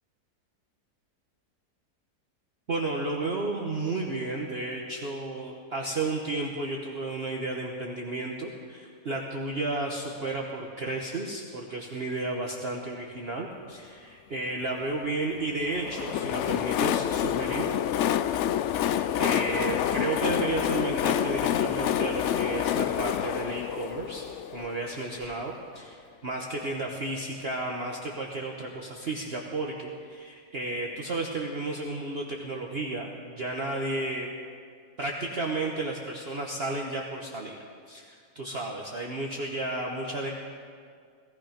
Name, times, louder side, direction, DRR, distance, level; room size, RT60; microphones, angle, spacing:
voice 1, 2.7-17.7 18.7-24.2 24.5-34.3 35.0-37.6 37.9-40.3, right 2 dB, 40° right, -1 dB, 1.3 m, -33 dB
Train, 15.7-25.3, left 11 dB, 80° left, 0.6 m, -28 dB
18.5 x 15.0 x 5.2 m, 2.1 s
omnidirectional pair, 1.8 m